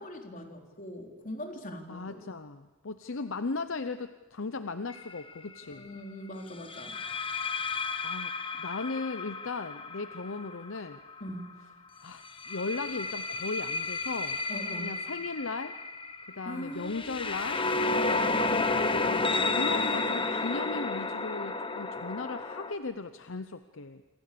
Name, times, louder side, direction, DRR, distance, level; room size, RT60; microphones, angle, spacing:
voice 1, 0.0-2.2 5.7-7.0 11.2-11.5 14.5-14.9 16.5-17.4 17.9-18.5, left 1 dB, 40° left, 3 dB, 3.7 m, -41 dB
voice 2, 1.9-5.9 8.0-11.0 12.0-14.4 14.8-15.8 16.3-17.6 18.5-24.0, left 3 dB, 65° left, 10 dB, 0.8 m, -37 dB
sound 1, 4.9-5.2 6.7-11.4 12.2-22.7, left 3 dB, 25° left, 1.3 m, -32 dB
27.0 x 26.0 x 6.9 m, 1.3 s
head